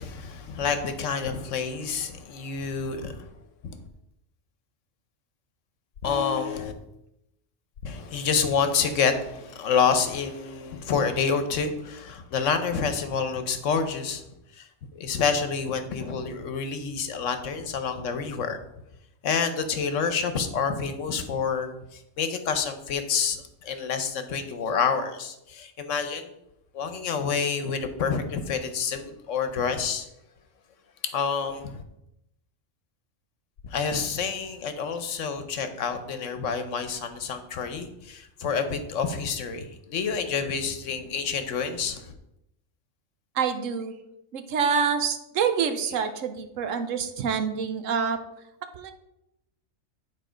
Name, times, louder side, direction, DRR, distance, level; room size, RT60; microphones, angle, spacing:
voice 1, 0.0-3.3 3.6-3.8 6.0-6.7 7.8-14.2 14.5-18.6 19.2-26.3 26.7-30.1 31.0-31.8 33.7-42.1, left 6 dB, 75° left, 8 dB, 1.2 m, -28 dB
voice 2, 43.3-43.9 44.3-48.2 48.8-48.9, right 6 dB, 85° right, 8 dB, 1.2 m, -26 dB
9.3 x 4.1 x 5.0 m, 0.86 s
omnidirectional pair, 1.3 m